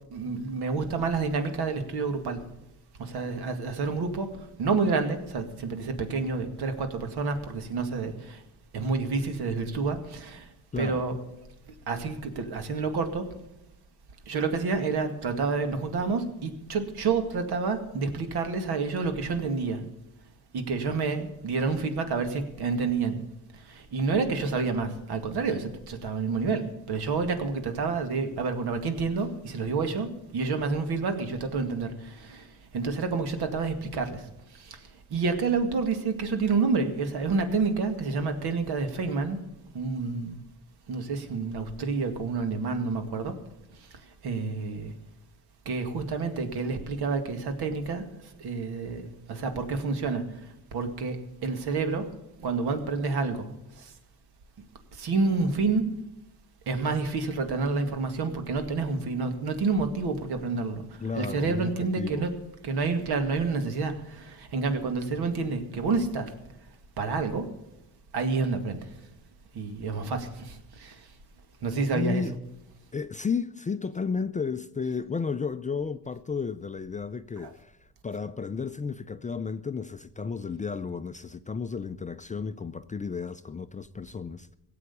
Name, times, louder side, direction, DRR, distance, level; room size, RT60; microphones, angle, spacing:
voice 1, 0.1-2.4 3.0-8.4 8.7-10.5 10.8-11.2 11.9-13.2 14.3-19.8 20.5-23.2 23.5-34.3 34.5-39.4 39.7-40.4 40.9-43.3 44.2-44.9 45.7-48.0 48.4-50.2 50.7-51.2 51.4-52.1 52.4-53.5 53.8-53.9 54.9-55.8 56.7-60.8 61.2-62.3 62.6-66.3 67.0-67.5 68.1-68.9 69.5-71.1 71.6-72.2 77.4-77.5, right 4 dB, 75° right, 2.2 m, -29 dB
voice 2, 10.7-11.0 61.0-62.3 71.9-72.4 72.9-77.8 78.0-84.6, left 5 dB, 20° left, 0.4 m, -33 dB
17.0 x 7.9 x 8.4 m
cardioid pair, 115°, 39 cm